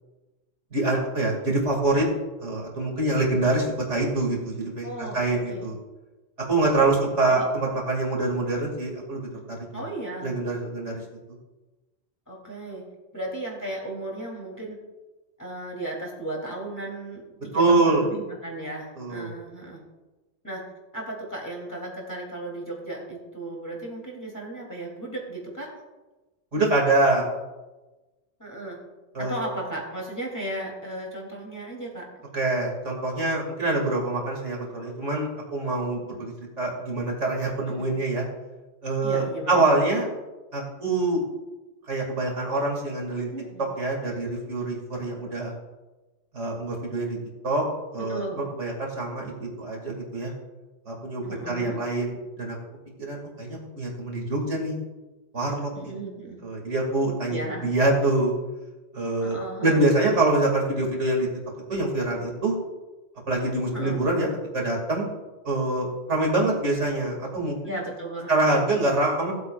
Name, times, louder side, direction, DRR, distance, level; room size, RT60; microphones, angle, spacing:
voice 1, 0.7-2.1 2.4-5.8 6.5-9.8 10.2-11.0 17.5-18.1 19.0-19.3 26.5-27.3 29.1-29.4 32.3-38.2 38.8-40.1 40.5-41.2 41.9-43.3 43.8-45.5 46.3-47.2 47.4-47.6 47.9-50.3 50.9-52.6 53.0-54.8 55.3-56.0 56.4-58.3 58.9-61.3 61.7-62.5 63.3-64.3 64.5-65.1 65.4-67.6 68.3-69.3, right 2 dB, 70° right, -1 dB, 3.1 m, -25 dB
voice 2, 4.8-5.7 6.8-7.4 9.7-10.3 12.3-12.9 13.1-14.8 15.4-19.8 20.4-20.6 20.9-25.7 28.4-28.8 29.2-32.1 37.7-37.9 39.0-39.6 43.3-43.6 48.0-48.4 51.2-51.8 55.7-56.4 57.3-57.7 59.2-59.9 63.7-64.0 67.6-68.4, right 2 dB, 15° left, -3 dB, 3.4 m, -35 dB
18.5 x 8.2 x 2.6 m, 1.1 s
omnidirectional pair, 1.3 m